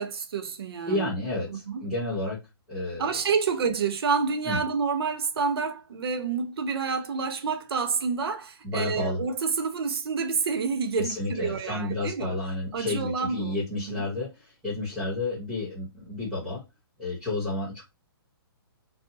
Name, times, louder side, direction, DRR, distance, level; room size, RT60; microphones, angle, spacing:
voice 1, 0.0-1.1 1.5-1.8 3.0-12.4 12.7-14.0, right 5 dB, 75° right, 0.6 m, -28 dB
voice 2, 0.9-2.4 2.7-3.1 4.4-4.6 8.6-9.2 10.9-16.6 17.0-17.8, left 2 dB, 5° right, 1.1 m, -31 dB
2.6 x 2.0 x 2.8 m
hypercardioid pair, 155°, 13 cm